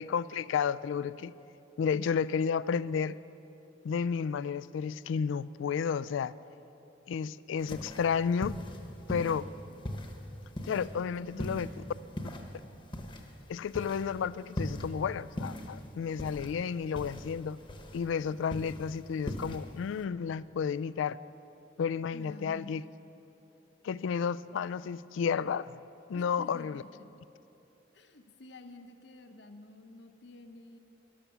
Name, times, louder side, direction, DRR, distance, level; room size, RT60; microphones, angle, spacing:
voice 1, 0.0-1.3 1.8-3.2 3.8-6.4 7.1-8.6 9.1-9.5 10.7-11.7 13.5-17.6 17.9-21.2 21.8-22.8 23.8-25.7 26.1-26.8, left 6 dB, 75° left, 19 dB, 0.3 m, -32 dB
sound 1, 7.6-20.1, left 1 dB, 25° left, 1.0 m, -41 dB
voice 2, 11.0-12.0 22.1-22.7 26.1-27.1 27.9-30.8, left 2 dB, 60° left, 7 dB, 0.9 m, -50 dB
12.5 x 11.5 x 7.2 m, 2.9 s
head